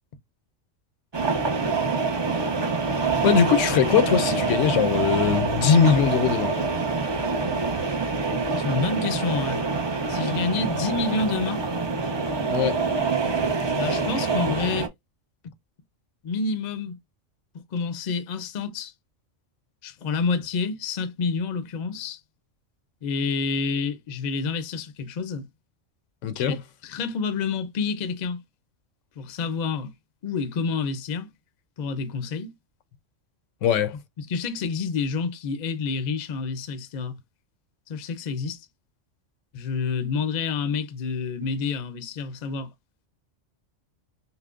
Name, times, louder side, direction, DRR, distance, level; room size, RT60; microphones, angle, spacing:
sound 1, 1.1-14.9, right 4 dB, 40° right, 0.4 m, -25 dB
voice 1, 3.2-6.6 12.5-12.8 26.2-26.6 33.6-34.0, left 7 dB, 85° left, 1.0 m, -21 dB
voice 2, 8.6-9.7 10.1-11.7 13.7-14.9 16.2-17.0 17.7-18.9 19.8-22.2 23.0-25.5 26.4-28.4 29.2-29.9 30.2-31.3 31.8-32.5 34.2-37.2 37.9-38.7 39.5-42.7, left 4 dB, 50° left, 0.5 m, -28 dB
5.6 x 2.0 x 2.4 m
omnidirectional pair, 1.3 m